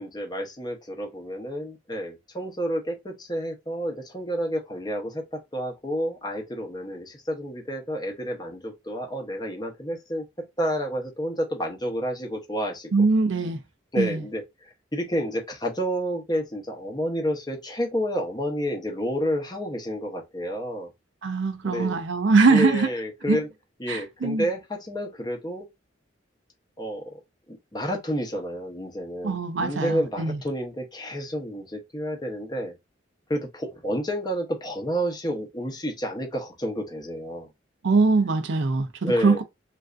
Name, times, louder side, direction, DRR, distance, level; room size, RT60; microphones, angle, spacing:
voice 1, 0.0-12.9 13.9-20.9 21.6-22.0 22.5-23.5 23.8-25.7 26.8-27.2 27.5-32.7 33.3-37.5 39.0-39.4, equal, 20° left, 0.8 m, -30 dB
voice 2, 12.9-13.6 14.0-14.2 21.2-22.9 23.3-23.4 23.9-24.4 29.2-30.4 37.8-39.4, right 3 dB, 70° right, 0.5 m, -22 dB
3.3 x 2.5 x 2.4 m
head